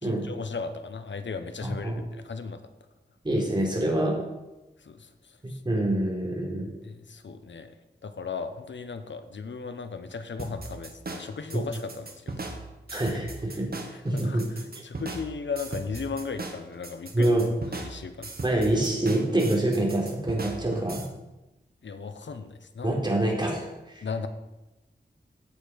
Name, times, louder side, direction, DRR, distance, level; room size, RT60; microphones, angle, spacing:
voice 1, 0.0-2.6 4.8-5.1 5.5-5.6 6.8-7.7 8.0-12.6 12.9-13.0 13.9-17.3 17.8-18.3 21.8-23.0 24.0-24.3, left 5 dB, 85° left, 9 dB, 1.0 m, -36 dB
voice 2, 1.6-2.0 3.2-4.2 5.4-6.7 12.9-13.7 14.0-14.4 17.1-17.4 18.4-21.0 22.8-23.7 24.0-24.1, right 1 dB, 25° right, -2 dB, 4.0 m, -26 dB
sound 1, 10.4-21.1, right 3 dB, 55° right, 1.7 m, -38 dB
16.5 x 6.6 x 5.3 m, 1.0 s
wide cardioid pair, 65°, 18 cm